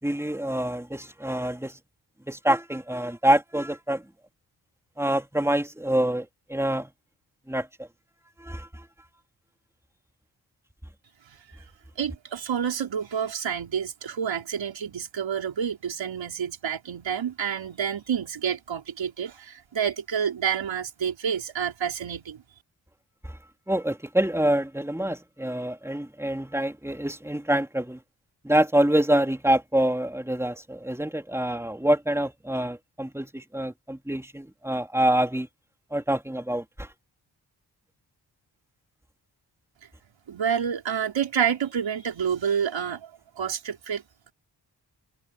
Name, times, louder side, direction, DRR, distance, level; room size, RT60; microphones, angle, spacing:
voice 1, 0.0-1.8 2.3-4.0 5.0-6.9 7.5-7.7 8.4-8.8 23.2-23.4 23.7-28.0 28.4-35.5 35.9-36.9, right 1 dB, 5° right, 3.7 m, -26 dB
voice 2, 12.0-22.4 40.3-43.1 43.4-44.0, right 8 dB, 80° right, 4.8 m, -28 dB
cardioid pair, 45°, 44 cm